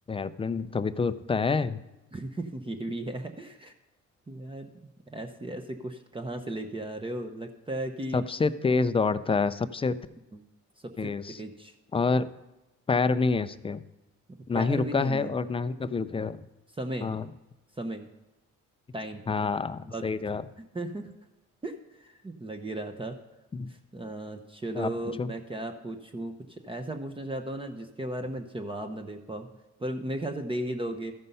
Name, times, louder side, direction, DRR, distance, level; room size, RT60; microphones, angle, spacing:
voice 1, 0.1-1.8 8.1-10.0 11.0-11.4 11.9-12.3 12.9-13.8 14.5-16.4 17.0-17.2 19.3-20.4 23.5-23.7 24.7-24.9 25.2-25.3, left 4 dB, 20° left, 13 dB, 0.4 m, -27 dB
voice 2, 2.1-3.7 4.3-4.7 5.1-8.2 10.3-10.4 10.8-11.1 11.4-11.7 14.5-15.4 16.7-17.1 17.8-18.0 18.9-19.2 19.9-20.0 20.7-21.1 21.6-23.2 23.7-29.5 29.8-31.1, right 1 dB, 15° right, 5 dB, 0.8 m, -35 dB
13.5 x 5.4 x 5.5 m, 1.0 s
cardioid pair, 90°, 30 cm